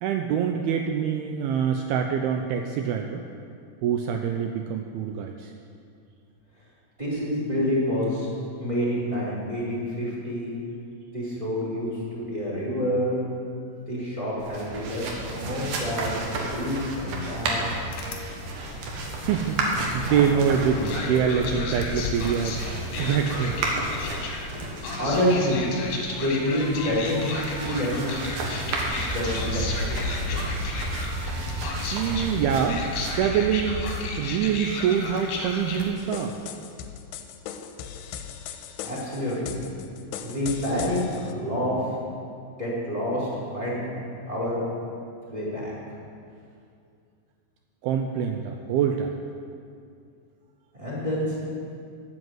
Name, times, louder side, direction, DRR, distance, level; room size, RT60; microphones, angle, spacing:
voice 1, 0.0-3.3 3.8-5.5 19.2-19.6 19.9-22.6 23.0-23.6 31.9-32.8 33.1-33.9 34.2-36.4 47.8-49.1, right 8 dB, 85° right, 5 dB, 2.2 m, -25 dB
voice 2, 7.0-8.3 8.6-10.5 11.1-13.2 13.9-17.6 25.0-25.7 26.1-28.4 29.0-30.5 38.8-39.6 40.2-41.9 42.6-43.3 43.5-43.9 44.3-44.6 45.3-45.7 50.7-51.4, equal, 10° right, -8 dB, 3.5 m, -28 dB
sound 1, 14.4-34.3, right 2 dB, 65° right, 3.0 m, -32 dB
sound 2, 17.9-35.9, left 3 dB, 65° left, 2.9 m, -34 dB
sound 3, 36.0-41.3, left 8 dB, 80° left, 2.7 m, -39 dB
12.0 x 8.0 x 7.9 m, 2.4 s
omnidirectional pair, 5.0 m